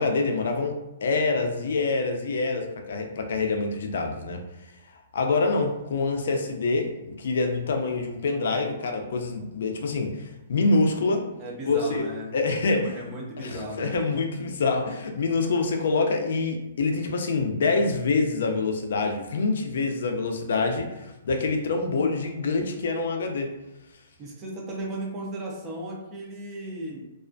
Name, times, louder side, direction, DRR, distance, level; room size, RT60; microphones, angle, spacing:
voice 1, 0.0-4.4 5.1-11.2 11.7-12.1 12.3-13.0 13.4-23.5, left 3 dB, 70° left, 4 dB, 0.4 m, -26 dB
voice 2, 11.4-12.4 12.7-14.0 24.2-27.1, right 1 dB, 15° right, -2 dB, 0.4 m, -35 dB
2.3 x 2.1 x 2.5 m, 0.92 s
hypercardioid pair, 170°, 0 cm